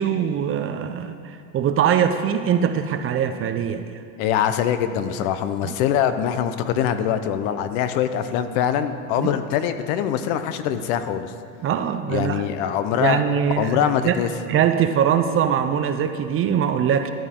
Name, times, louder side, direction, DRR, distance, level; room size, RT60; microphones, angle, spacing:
voice 1, 0.0-3.9 5.6-5.7 9.2-9.3 11.6-12.5 13.0-14.2 14.5-17.1, right 8 dB, 30° right, 8 dB, 0.5 m, -22 dB
voice 2, 4.2-11.3 12.1-13.2 13.6-14.3, left 9 dB, 60° left, 10 dB, 0.9 m, -23 dB
14.0 x 10.5 x 3.7 m, 2.3 s
supercardioid pair, 125°, 45 cm